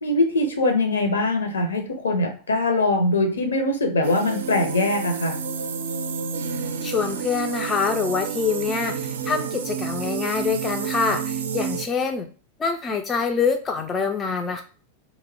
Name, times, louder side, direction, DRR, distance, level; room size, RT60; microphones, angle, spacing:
voice 1, 0.0-5.4, left 2 dB, 70° left, 4 dB, 0.7 m, -22 dB
sound 1, 4.0-11.9, right 6 dB, 60° right, 0.4 m, -30 dB
voice 2, 6.8-12.3 12.6-14.6, left 5 dB, 20° left, 4 dB, 0.3 m, -25 dB
2.6 x 2.1 x 3.8 m, 0.37 s
figure-of-eight pair, 90°, 0 cm